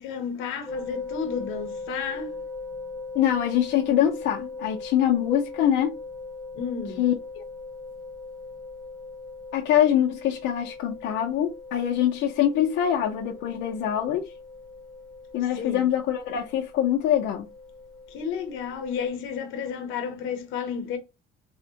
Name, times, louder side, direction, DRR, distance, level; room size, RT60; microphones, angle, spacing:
voice 1, 0.0-2.4 6.5-7.1 15.5-15.9 18.1-21.0, left 6 dB, 85° left, 0.9 m, -32 dB
sound 1, 0.7-19.1, left 3 dB, ahead, 1.0 m, -40 dB
voice 2, 3.1-6.0 7.0-7.1 9.5-14.3 15.3-17.5, left 10 dB, 65° left, 0.5 m, -24 dB
3.4 x 2.1 x 2.7 m
cardioid pair, 155°, 20 cm